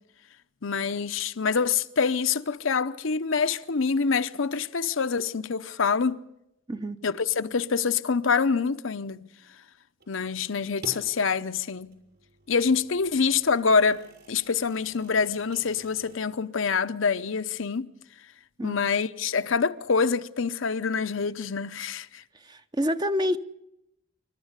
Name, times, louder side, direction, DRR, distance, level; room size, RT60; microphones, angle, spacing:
voice 1, 0.6-6.2 7.0-9.3 10.1-12.0 12.5-17.9 18.6-22.2, left 5 dB, 70° left, 0.8 m, -26 dB
sound 1, 10.0-11.1 11.7-16.2, right 2 dB, 55° right, 6.6 m, -49 dB
voice 2, 22.4-23.4, equal, 20° right, 0.7 m, -27 dB
28.0 x 13.0 x 8.2 m
head